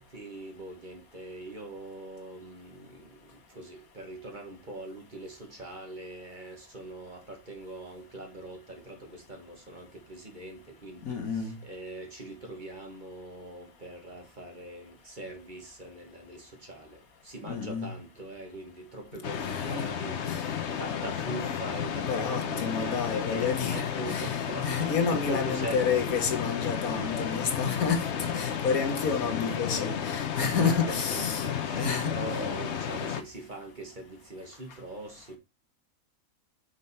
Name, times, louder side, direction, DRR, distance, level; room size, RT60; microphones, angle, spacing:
voice 1, 0.0-26.0 26.9-27.7 30.4-35.4, right 2 dB, 35° right, 1.7 m, -42 dB
voice 2, 11.0-11.6 17.5-17.9 19.4-19.9 20.2-20.4 22.0-24.3 24.6-31.5 31.7-32.2, left 6 dB, 80° left, 1.7 m, -30 dB
sound 1, 19.2-33.2, left 8 dB, 55° left, 1.0 m, -32 dB
5.7 x 5.2 x 4.2 m
omnidirectional pair, 1.5 m